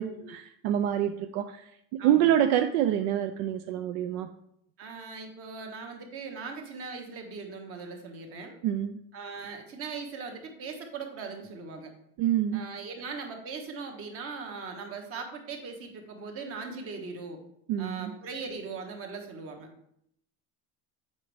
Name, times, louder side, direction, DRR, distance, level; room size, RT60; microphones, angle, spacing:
voice 1, 0.0-1.5 2.0-4.3 8.6-9.0 12.2-12.6 17.7-18.1, right 11 dB, 75° right, 8 dB, 0.5 m, -26 dB
voice 2, 2.0-2.4 4.8-8.5 9.1-11.9 12.5-17.4 17.8-19.7, right 4 dB, 40° right, 3 dB, 1.3 m, -40 dB
8.1 x 5.1 x 3.4 m, 0.73 s
cardioid pair, 160°, 35 cm